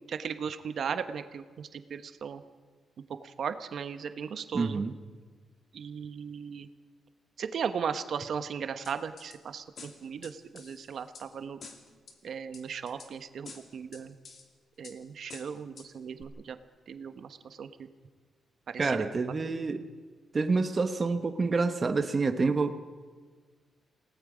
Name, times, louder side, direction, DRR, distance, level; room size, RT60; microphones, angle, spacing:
voice 1, 0.1-2.4 3.2-4.8 5.7-6.7 7.4-11.6 12.2-14.1 14.8-16.6 16.9-17.9 18.7-19.0, right 7 dB, 55° right, 9 dB, 1.1 m, -37 dB
voice 2, 4.5-4.9 18.8-19.8 20.3-22.7, right 4 dB, 30° right, 7 dB, 1.0 m, -27 dB
sound 1, 8.8-9.4 9.8-11.3 11.6-12.2 12.5-13.1 13.4-14.4 14.8-15.0 15.3-15.9 16.2-16.3, left 4 dB, 50° left, 2.6 m, -48 dB
28.5 x 18.5 x 5.1 m, 1.5 s
wide cardioid pair, 155°, 0 cm